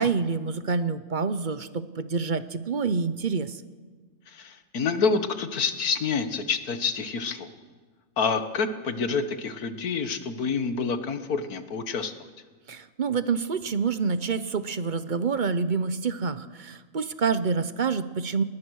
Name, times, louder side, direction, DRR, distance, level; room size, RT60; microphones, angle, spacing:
voice 1, 0.0-3.6 12.7-18.4, right 5 dB, 40° right, 13 dB, 0.8 m, -27 dB
voice 2, 4.3-7.5 8.2-12.3, left 5 dB, 90° left, 10 dB, 1.9 m, -28 dB
28.5 x 20.0 x 6.4 m, 1.5 s
omnidirectional pair, 1.5 m